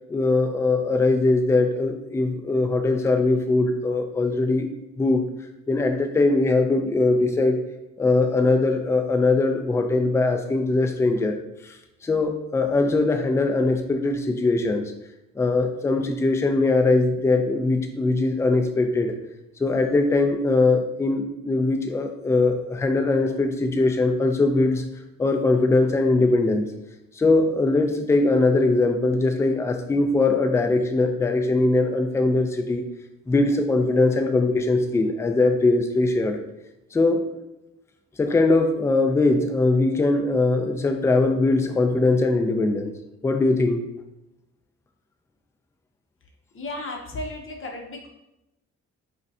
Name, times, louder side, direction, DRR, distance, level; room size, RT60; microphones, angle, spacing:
voice 1, 0.1-4.7 5.0-5.3 5.7-7.6 8.0-11.4 11.6-11.7 12.0-14.9 15.4-19.1 19.6-24.8 25.2-26.7 27.2-32.8 33.3-36.4 36.9-37.4 38.2-42.9 43.2-43.8, left 2 dB, 10° left, 5 dB, 0.3 m, -21 dB
voice 2, 46.5-48.1, left 2 dB, 45° left, 1 dB, 0.7 m, -34 dB
5.0 x 2.2 x 2.7 m, 0.90 s
cardioid pair, 90°, 30 cm